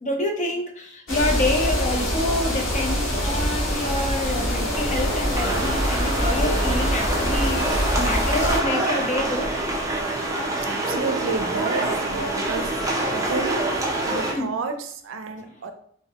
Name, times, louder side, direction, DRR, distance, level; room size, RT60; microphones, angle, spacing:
voice 1, 0.0-9.5 14.3-14.6, left 1 dB, 40° left, 3 dB, 0.6 m, -27 dB
sound 1, 1.1-8.6, equal, 80° left, 1.2 m, -24 dB
sound 2, 4.5-14.3, right 2 dB, 15° right, 0.4 m, -26 dB
voice 2, 10.6-13.6 14.1-15.7, right 4 dB, 90° right, 7 dB, 0.4 m, -31 dB
3.3 x 2.1 x 2.8 m, 0.62 s
head